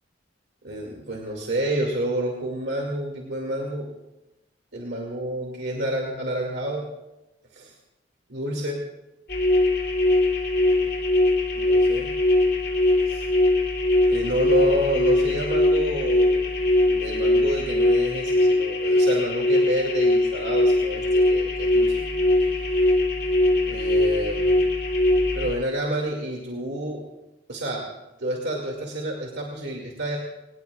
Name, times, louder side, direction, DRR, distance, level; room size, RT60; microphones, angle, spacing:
voice 1, 0.6-3.9 4.7-6.8 7.5-7.7 8.3-8.8 10.6-10.9 11.5-12.1 13.1-13.2 14.1-16.5 16.7-22.0 22.4-22.7 23.6-24.6 25.3-27.0 27.5-27.8 28.2-30.2, right 1 dB, 65° right, -1 dB, 2.5 m, -29 dB
sound 1, 9.3-25.5, left 1 dB, 50° left, 2.9 m, -21 dB
25.5 x 19.0 x 2.5 m, 0.95 s
head